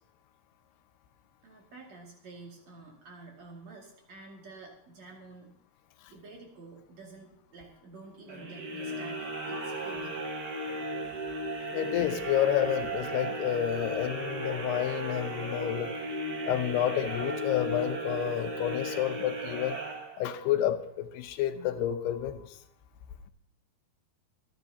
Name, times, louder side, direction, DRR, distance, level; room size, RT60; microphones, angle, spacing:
voice 1, 1.4-5.5 6.1-10.3, right 3 dB, 45° right, -1 dB, 3.2 m, -49 dB
sound 1, 8.3-20.5, right 1 dB, 75° right, 0.9 m, -36 dB
voice 2, 11.7-15.9 16.5-19.8 20.2-22.4, left 11 dB, 85° left, 8 dB, 2.9 m, -30 dB
25.5 x 11.0 x 2.8 m, 0.70 s
omnidirectional pair, 4.6 m